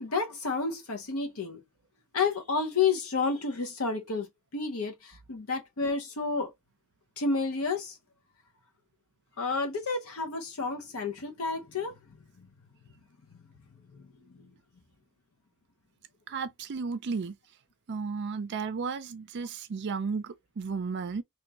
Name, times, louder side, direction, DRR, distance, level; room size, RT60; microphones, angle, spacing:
voice 1, 0.0-1.6 2.1-4.3 4.5-6.5 7.2-8.0 9.4-11.9 13.9-14.0, left 4 dB, 70° left, 0.7 m, -30 dB
voice 2, 16.3-17.3 17.9-21.2, right 5 dB, 50° right, 0.5 m, -33 dB
3.5 x 3.0 x 2.9 m
head